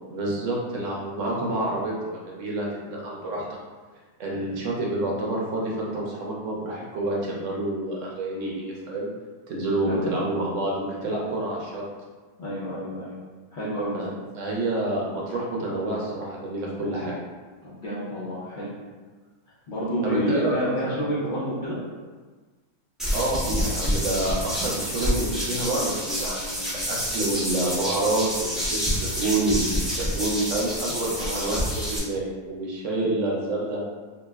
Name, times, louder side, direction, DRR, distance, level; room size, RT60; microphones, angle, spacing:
voice 1, 0.0-3.5 4.2-9.1 9.5-11.8 13.9-17.1 20.0-21.0 23.1-33.8, right 2 dB, 60° right, -3 dB, 0.9 m, -28 dB
voice 2, 12.4-13.1 13.5-14.1 17.6-18.7 19.7-21.8 31.1-31.5 32.9-33.1, equal, 70° left, -9 dB, 0.4 m, -29 dB
sound 1, 23.0-32.0, equal, ahead, 0.4 m, -28 dB
3.0 x 2.1 x 3.3 m, 1.4 s
omnidirectional pair, 1.7 m